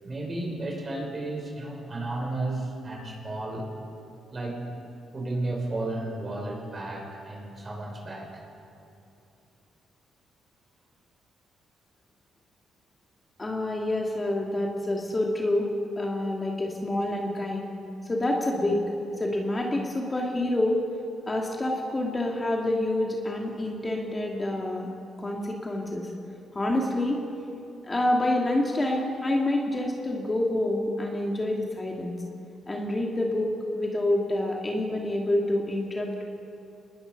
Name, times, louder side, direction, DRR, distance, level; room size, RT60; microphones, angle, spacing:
voice 1, 0.0-3.7 4.3-4.6 5.1-8.4, right 2 dB, 30° right, 0 dB, 6.6 m, -33 dB
voice 2, 13.4-15.7 16.0-17.7 18.0-18.8 19.2-20.8 21.3-24.9 25.2-26.1 26.5-27.2 27.8-32.2 32.7-36.2, left 1 dB, 20° left, -1 dB, 2.7 m, -27 dB
26.5 x 21.0 x 5.5 m, 2.6 s
cardioid pair, 90°, 0 cm